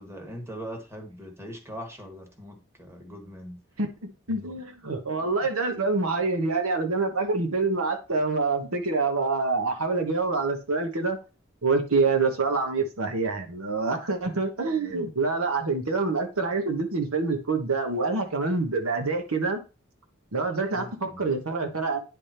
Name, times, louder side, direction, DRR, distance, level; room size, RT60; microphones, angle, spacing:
voice 1, 0.0-3.6 4.3-4.5 5.2-5.3 20.7-21.3, equal, 10° right, 3 dB, 1.4 m, -41 dB
voice 2, 3.8-11.2 11.6-19.6 20.3-22.0, right 3 dB, 85° right, 5 dB, 1.3 m, -26 dB
9.8 x 3.5 x 4.4 m, 0.32 s
head